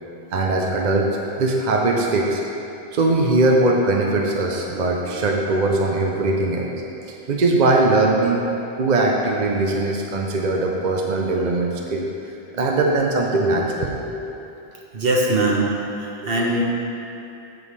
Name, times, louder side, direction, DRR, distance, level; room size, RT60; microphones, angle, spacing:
voice 1, 0.3-2.4 2.9-6.7 7.1-8.4 8.8-12.1 12.5-14.4 16.2-16.3, right 2 dB, 50° right, 0 dB, 0.7 m, -20 dB
voice 2, 4.7-5.2 14.9-15.7 16.0-16.6, right 2 dB, 65° right, -2 dB, 1.2 m, -22 dB
8.2 x 7.1 x 3.2 m, 2.8 s
omnidirectional pair, 1.0 m